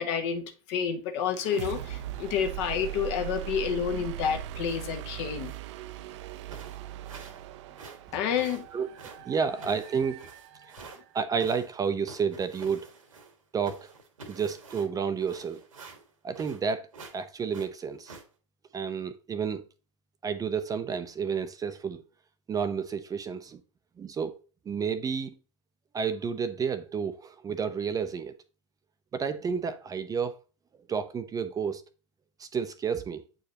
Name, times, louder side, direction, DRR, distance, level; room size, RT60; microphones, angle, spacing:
voice 1, 0.0-5.5 8.1-8.7, left 7 dB, 55° left, 1.3 m, -29 dB
sound 1, 1.3-11.0, right 13 dB, 65° right, 0.6 m, -40 dB
sound 2, 4.7-5.0 5.4-5.7 6.2-6.3 6.5-7.4 7.7-11.0 11.4-13.4 13.6-16.7 16.9-17.2 17.5-18.2, right 4 dB, 85° right, 1.5 m, -48 dB
voice 2, 9.3-10.2 11.1-12.9 13.5-13.9 14.3-15.6 16.2-16.9 17.1-18.1 18.7-19.6 20.2-22.0 22.5-23.6 24.0-24.4 24.7-25.3 25.9-28.3 29.1-30.4 30.9-31.8 32.4-33.2, right 6 dB, 20° right, 0.6 m, -30 dB
8.2 x 4.7 x 2.9 m
hypercardioid pair, 90°, 17 cm